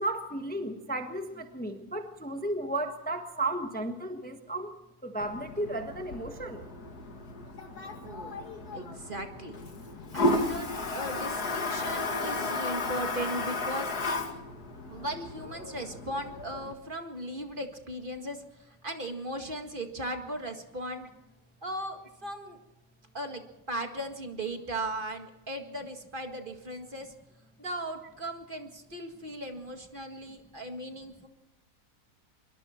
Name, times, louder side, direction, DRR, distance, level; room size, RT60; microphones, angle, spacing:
voice 1, 0.0-4.7 5.0-6.6, right 2 dB, 5° left, 5 dB, 1.3 m, -34 dB
Toilet flush, 5.2-16.7, left 2 dB, 85° left, 2.7 m, -34 dB
voice 2, 8.0-8.4 8.7-9.6 10.1-10.7 10.9-13.9 14.9-21.1 21.6-22.6 23.1-27.1 27.6-31.3, right 1 dB, 35° right, 5 dB, 2.1 m, -37 dB
25.5 x 23.0 x 4.5 m, 0.98 s
omnidirectional pair, 1.6 m